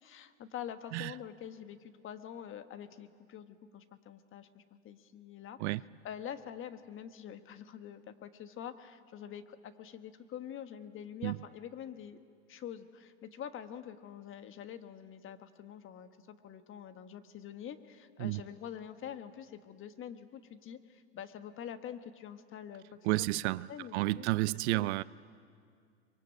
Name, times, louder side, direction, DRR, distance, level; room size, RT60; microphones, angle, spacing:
voice 1, 0.0-5.6 6.0-12.2 12.5-22.8 23.7-24.3 24.7-24.9, left 9 dB, 35° left, 1.4 m, -46 dB
voice 2, 23.0-23.7 23.9-25.0, right 20 dB, 65° right, 0.6 m, -31 dB
24.5 x 23.0 x 8.3 m
hypercardioid pair, 105°, 36 cm